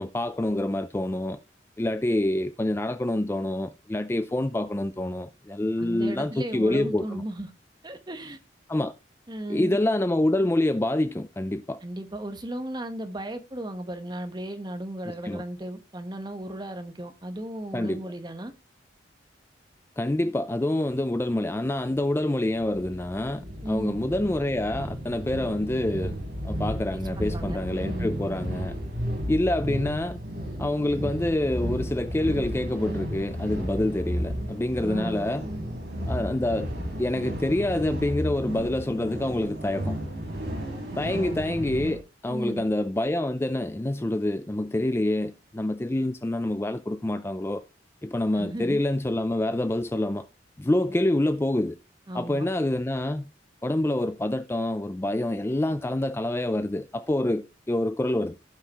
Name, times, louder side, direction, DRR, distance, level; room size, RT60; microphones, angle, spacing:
voice 1, 0.0-1.4 1.8-7.2 8.7-8.9 9.5-11.8 15.2-15.4 17.7-18.1 20.0-26.1 26.4-28.7 29.3-30.2 30.6-35.5 36.1-36.7 37.0-40.0 40.9-47.6 48.0-50.3 50.6-51.8 52.1-53.3 53.6-58.3, left 1 dB, 15° left, 0.4 m, -27 dB
voice 2, 5.8-7.5 7.8-8.4 9.3-9.8 11.8-18.5 23.6-24.0 26.9-27.6 27.9-28.4 34.8-35.3 41.1-41.4 42.3-42.6 48.4-48.8 52.1-52.4, right 1 dB, 25° right, 1.2 m, -35 dB
sound 1, 22.6-42.0, equal, 65° right, 4.7 m, -33 dB
15.5 x 5.7 x 3.0 m
head